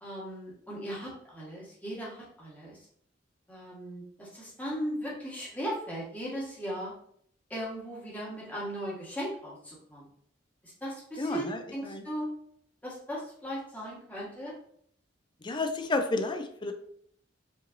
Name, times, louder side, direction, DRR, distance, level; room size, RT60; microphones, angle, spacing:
voice 1, 0.0-2.8 3.5-6.9 7.5-10.1 10.6-12.3 12.8-14.5, equal, 10° left, -6 dB, 1.5 m, -38 dB
voice 2, 11.2-12.0 15.4-16.7, left 2 dB, 25° left, 6 dB, 0.4 m, -31 dB
5.1 x 3.2 x 2.6 m, 0.63 s
head